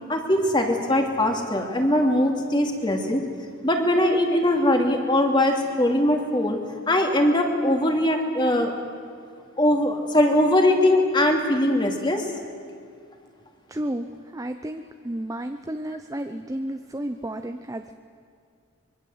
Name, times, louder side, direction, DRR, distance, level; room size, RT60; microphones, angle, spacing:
voice 1, 0.1-3.2 3.6-6.6 6.9-8.7 9.6-12.3, left 1 dB, 20° left, 3 dB, 2.6 m, -21 dB
voice 2, 13.7-17.9, right 1 dB, 15° right, 7 dB, 0.7 m, -32 dB
25.0 x 22.5 x 8.0 m, 2.3 s
head